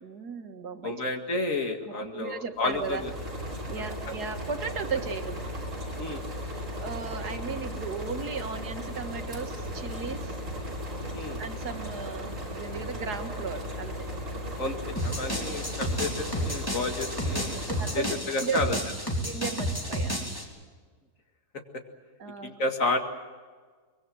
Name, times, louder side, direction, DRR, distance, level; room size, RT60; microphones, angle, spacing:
voice 1, 0.0-0.9 1.9-3.0 3.7-5.4 6.8-10.4 11.4-14.1 17.7-18.6 19.2-20.1 22.2-22.5, right 5 dB, 80° right, 6 dB, 2.2 m, -36 dB
voice 2, 0.8-3.1 3.8-3.9 6.0-6.2 11.1-11.4 14.6-14.8 15.0-17.5 17.9-18.8 22.4-23.0, left 2 dB, 55° left, 4 dB, 2.4 m, -31 dB
sound 1, 2.6-18.4, equal, 50° right, 5.7 m, -36 dB
sound 2, 15.0-20.4, equal, 15° left, 3.4 m, -31 dB
24.0 x 22.5 x 7.7 m, 1.5 s
omnidirectional pair, 1.7 m